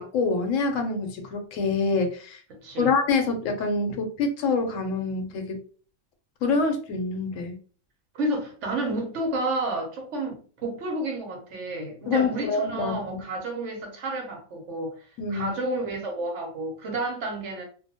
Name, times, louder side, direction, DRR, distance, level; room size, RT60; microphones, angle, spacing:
voice 1, 0.0-2.4 2.8-5.6 6.4-7.6 12.1-13.2 15.2-15.5, left 4 dB, 80° left, 1.0 m, -26 dB
voice 2, 2.5-2.9 8.1-17.6, right 2 dB, 70° right, 1.1 m, -31 dB
2.6 x 2.0 x 2.7 m
omnidirectional pair, 1.3 m